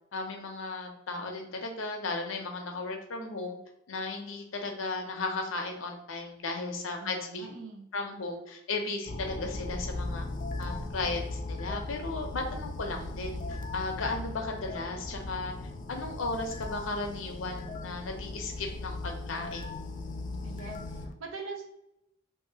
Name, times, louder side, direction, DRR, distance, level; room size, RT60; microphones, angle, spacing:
voice 1, 0.1-3.6 3.9-7.5 7.9-10.3 10.6-15.5 15.9-19.7, left 3 dB, 75° left, 3 dB, 0.6 m, -35 dB
voice 2, 7.0-7.9 20.4-21.7, right 4 dB, 80° right, 2 dB, 0.7 m, -43 dB
sound 1, 9.0-21.1, left 2 dB, 40° left, 0.3 m, -38 dB
2.8 x 2.5 x 2.7 m, 0.82 s
head